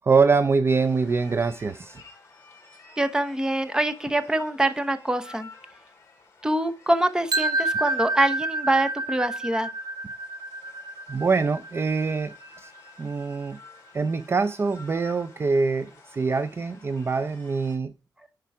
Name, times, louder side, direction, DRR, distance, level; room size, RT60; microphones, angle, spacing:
voice 1, 0.0-2.0 11.1-12.7 13.0-13.6 13.9-17.9, right 4 dB, 35° right, 0.5 m, -24 dB
sound 1, 0.6-17.8, left 3 dB, 35° left, 3.5 m, -52 dB
voice 2, 3.0-5.5 6.4-9.7, right 1 dB, 10° right, 0.9 m, -24 dB
sound 2, 7.3-13.2, right 2 dB, 60° right, 0.8 m, -30 dB
10.5 x 4.7 x 4.8 m
wide cardioid pair, 135°, 7 cm